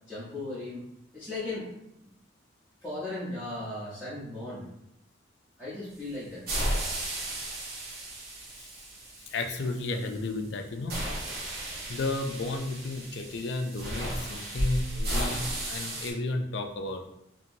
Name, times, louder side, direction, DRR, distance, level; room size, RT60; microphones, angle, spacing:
voice 1, 0.1-0.8 1.1-1.7 2.0-2.1 2.8-4.6 5.6-6.5, left 2 dB, 5° right, -11 dB, 0.8 m, -37 dB
sound 1, 6.5-10.3 10.9-16.1, right 1 dB, 50° right, 0.8 m, -34 dB
voice 2, 9.3-10.9 11.9-17.0, left 2 dB, 60° left, 5 dB, 0.4 m, -33 dB
2.9 x 2.8 x 2.6 m, 0.78 s
head